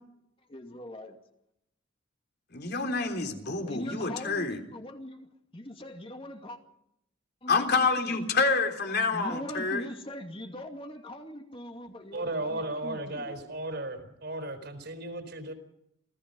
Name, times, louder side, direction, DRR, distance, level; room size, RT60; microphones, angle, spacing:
voice 1, 0.5-1.2 3.4-5.3 5.5-6.6 7.4-8.3 9.1-13.4, left 1 dB, 30° left, 4 dB, 2.5 m, -41 dB
voice 2, 2.5-4.6 7.5-9.8, left 4 dB, 55° left, 4 dB, 3.4 m, -27 dB
voice 3, 12.1-15.5, right 2 dB, 55° right, 8 dB, 4.3 m, -35 dB
28.5 x 17.5 x 5.5 m, 0.78 s
head